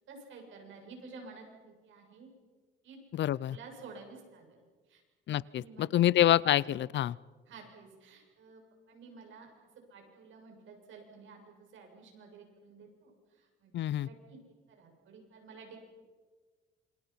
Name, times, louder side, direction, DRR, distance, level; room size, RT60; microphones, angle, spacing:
voice 1, 0.1-2.3 2.8-3.0 3.5-4.6 4.9-5.0 5.5-6.2 7.5-8.6 8.9-9.5 9.8-13.7 14.0-14.4 14.7-15.8, right 4 dB, 75° right, 2 dB, 7.2 m, -52 dB
voice 2, 3.1-3.6 5.3-7.2 13.7-14.1, left 12 dB, 65° left, 23 dB, 0.6 m, -27 dB
28.0 x 25.5 x 5.8 m, 1.4 s
cardioid pair, 90°, 20 cm